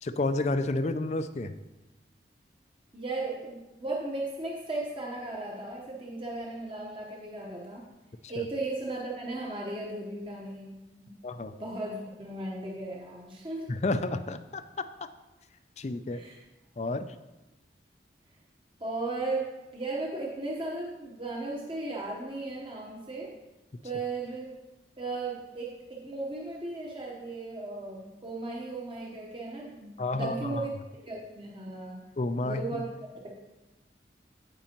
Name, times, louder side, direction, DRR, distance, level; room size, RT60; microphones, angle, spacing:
voice 1, 0.0-1.5 8.4-8.5 11.2-11.5 13.7-14.9 15.8-16.2 16.8-17.1 30.0-30.7 32.2-32.8, left 2 dB, 40° left, 12 dB, 0.4 m, -30 dB
voice 2, 2.9-7.9 8.3-10.8 11.0-11.1 11.6-13.7 16.1-16.4 18.8-23.3 23.8-24.4 25.0-32.0 32.4-32.9 33.2-33.3, right 2 dB, 30° right, -2 dB, 1.0 m, -36 dB
16.0 x 5.4 x 3.0 m, 1.1 s
head